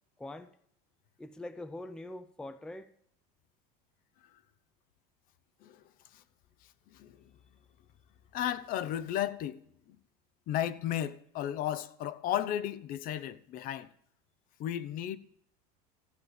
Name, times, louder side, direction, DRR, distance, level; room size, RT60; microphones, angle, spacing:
voice 1, 0.2-0.5 1.2-2.9, left 1 dB, 5° left, 0.6 m, -43 dB
voice 2, 8.3-9.6 10.5-13.9 14.6-15.2, left 11 dB, 45° left, 0.9 m, -34 dB
14.5 x 9.0 x 8.1 m
supercardioid pair, 145°, 20 cm